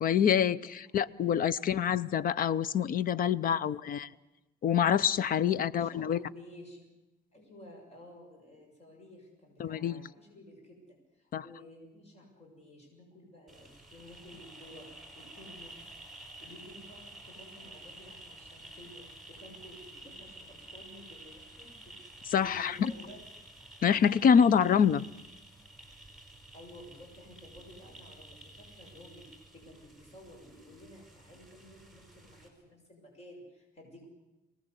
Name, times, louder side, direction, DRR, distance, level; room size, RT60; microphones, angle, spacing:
voice 1, 0.0-4.1 4.6-6.2 9.6-10.0 11.3-11.4 22.3-22.9 23.8-25.0, left 8 dB, 55° left, 18 dB, 0.7 m, -26 dB
voice 2, 0.6-1.4 3.3-4.0 5.5-6.9 7.3-15.9 16.4-22.0 22.3-23.2 26.5-34.1, left 1 dB, 35° left, 1 dB, 6.8 m, -53 dB
sound 1, 13.5-32.5, right 2 dB, ahead, 5.5 m, -51 dB
24.5 x 19.0 x 8.2 m, 1.0 s
cardioid pair, 135°, 18 cm